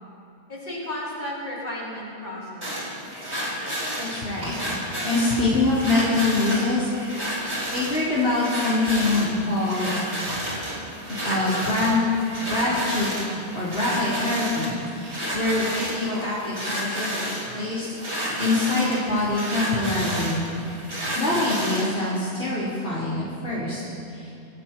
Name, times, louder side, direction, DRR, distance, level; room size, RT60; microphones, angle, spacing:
voice 1, 0.5-2.9, left 1 dB, 50° left, -6 dB, 5.4 m, -34 dB
sound 1, 2.6-21.9, equal, 80° right, 4.6 m, -31 dB
voice 2, 4.0-4.7 5.0-10.1 10.3-10.4 11.2-12.0 12.4-13.1 13.5-20.5 21.2-23.8 24.1-24.3, left 2 dB, 70° left, -10 dB, 4.4 m, -25 dB
27.0 x 17.0 x 3.1 m, 2.8 s
omnidirectional pair, 1.1 m